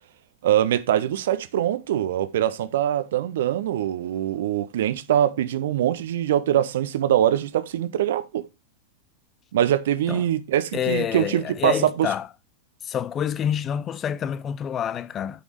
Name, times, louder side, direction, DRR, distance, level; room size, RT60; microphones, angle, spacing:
voice 1, 0.4-8.5 9.5-12.1, right 11 dB, 60° right, 0.8 m, -23 dB
voice 2, 10.7-12.3 12.8-15.4, left 9 dB, 25° left, 0.6 m, -27 dB
8.8 x 5.3 x 4.6 m
figure-of-eight pair, 90°, 0 cm